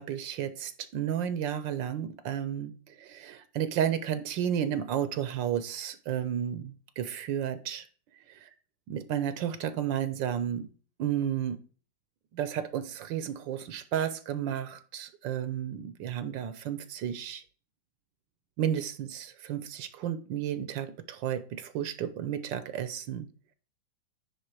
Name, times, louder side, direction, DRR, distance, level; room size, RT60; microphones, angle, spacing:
voice 1, 0.0-7.9 8.3-8.4 8.9-10.7 11.0-11.6 12.3-17.4 18.6-23.3, right 9 dB, 75° right, 12 dB, 1.4 m, -32 dB
9.8 x 3.7 x 4.7 m, 0.40 s
omnidirectional pair, 2.1 m